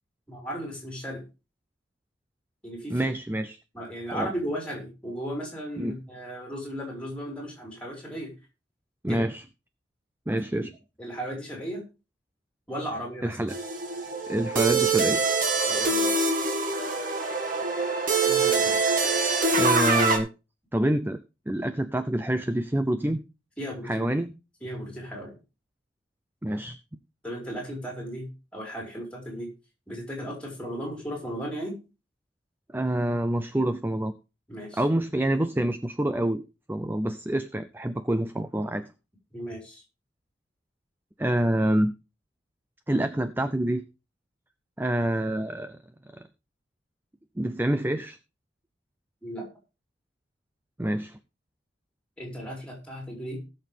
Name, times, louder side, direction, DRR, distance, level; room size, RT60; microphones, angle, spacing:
voice 1, 0.3-1.2 2.6-3.1 3.7-8.3 9.1-9.2 11.0-11.8 12.7-13.4 15.6-16.3 18.2-18.8 23.6-24.0 24.6-25.3 27.2-29.5 29.9-31.8 34.5-34.8 39.3-39.8 49.2-49.5 52.2-53.4, equal, 5° left, 0 dB, 4.2 m, -35 dB
voice 2, 2.9-3.6 4.1-4.3 5.8-5.9 9.0-9.4 10.3-10.7 13.2-13.6 14.3-15.2 19.6-20.3 20.7-21.2 21.5-23.2 23.9-24.3 26.4-26.8 32.7-34.1 34.7-36.4 36.7-38.9 41.2-41.9 42.9-43.8 44.8-45.7 46.1-46.2 47.4-48.2 50.8-51.2, right 1 dB, 10° right, 11 dB, 0.5 m, -27 dB
sound 1, 13.5-20.2, right 3 dB, 45° right, 1.9 m, -24 dB
19.0 x 6.5 x 3.4 m, 0.29 s
head